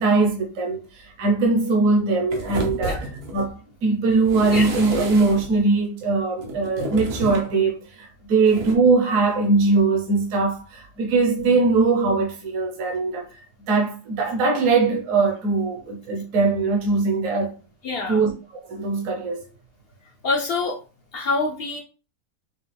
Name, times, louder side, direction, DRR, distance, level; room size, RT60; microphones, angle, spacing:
voice 1, 0.0-3.1 3.3-13.4 13.7-17.5 18.1-19.5, right 3 dB, 65° right, 1.2 m, -21 dB
sound 1, 2.3-3.5 4.1-5.6 6.4-7.5 8.5-8.7, right 1 dB, 80° right, 1.5 m, -31 dB
voice 2, 17.8-18.2 20.2-20.8 21.1-21.8, left 3 dB, 60° left, 0.6 m, -25 dB
5.6 x 2.2 x 3.3 m
omnidirectional pair, 1.6 m